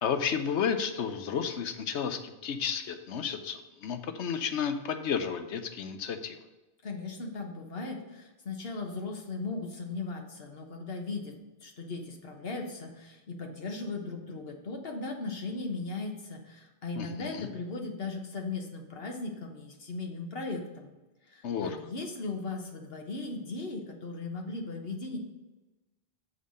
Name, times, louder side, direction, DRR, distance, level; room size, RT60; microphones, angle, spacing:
voice 1, 0.0-6.4 17.0-17.5 21.4-21.8, left 7 dB, 85° left, 8 dB, 1.0 m, -32 dB
voice 2, 6.8-20.9 21.3-25.2, left 3 dB, 60° left, 2 dB, 1.3 m, -37 dB
6.3 x 5.4 x 6.3 m, 1.1 s
omnidirectional pair, 1.1 m